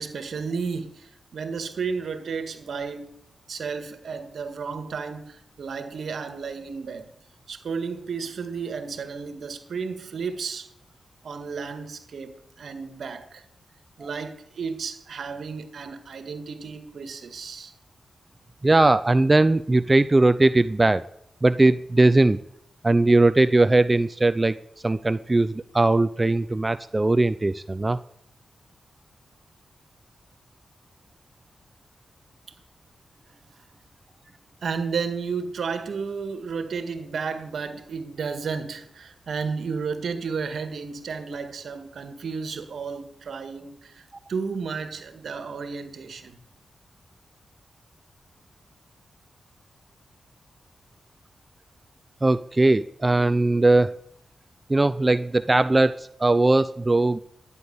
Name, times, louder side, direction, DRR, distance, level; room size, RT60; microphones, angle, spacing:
voice 1, 0.0-3.1 3.5-7.1 7.5-10.7 11.2-13.4 14.0-17.7 34.6-46.4, right 5 dB, 75° right, 1.8 m, -32 dB
voice 2, 18.6-21.0 21.4-22.4 22.8-24.6 24.8-28.0 52.2-53.9 54.7-57.2, right 2 dB, 30° right, 0.5 m, -19 dB
11.5 x 9.7 x 7.0 m
cardioid pair, 45°, 0 cm